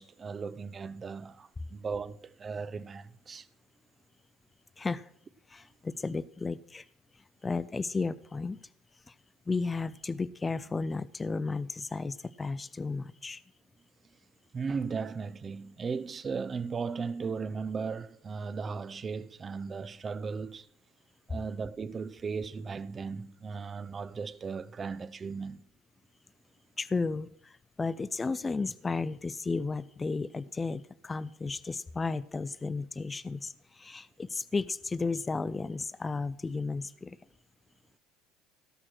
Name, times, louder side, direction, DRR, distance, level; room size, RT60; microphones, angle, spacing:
voice 1, 0.0-3.5 14.5-20.7 21.3-25.6, right 5 dB, 35° right, 0.7 m, -36 dB
voice 2, 4.8-5.1 5.5-6.9 7.4-8.7 9.1-9.2 9.5-13.4 26.8-37.2, left 4 dB, 25° left, 0.5 m, -33 dB
17.0 x 6.0 x 6.5 m
hypercardioid pair, 70°, 0 cm